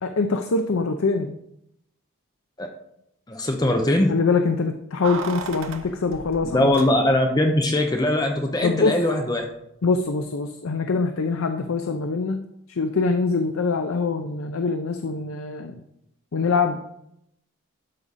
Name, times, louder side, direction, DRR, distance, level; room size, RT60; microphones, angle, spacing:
voice 1, 0.0-1.4 4.1-6.8 8.6-9.0 9.8-12.4 12.7-15.8 16.3-16.8, left 4 dB, 80° left, 7 dB, 0.6 m, -24 dB
voice 2, 3.3-4.1 6.5-9.4, left 1 dB, 20° left, 3 dB, 0.7 m, -21 dB
Keys jangling, 5.0-7.4 7.6-7.7, right 4 dB, 70° right, 0.9 m, -35 dB
12.0 x 4.9 x 4.1 m, 0.79 s
head